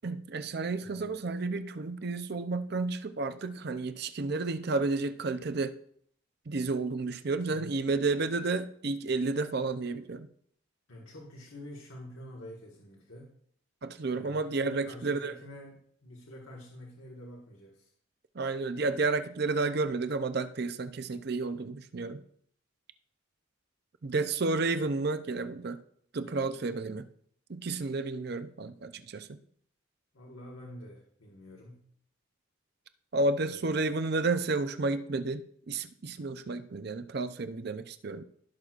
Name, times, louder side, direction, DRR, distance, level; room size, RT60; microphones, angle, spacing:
voice 1, 0.0-5.7 6.5-10.3 13.8-15.3 18.3-22.2 24.0-25.8 26.1-27.1 27.5-29.4 33.1-38.2, right 3 dB, 50° right, 10 dB, 0.5 m, -31 dB
voice 2, 0.8-1.2 7.5-8.0 10.9-13.4 14.1-17.9 30.1-31.8 33.5-33.7, left 1 dB, 80° left, -2 dB, 1.5 m, -48 dB
16.5 x 6.1 x 2.5 m, 0.64 s
head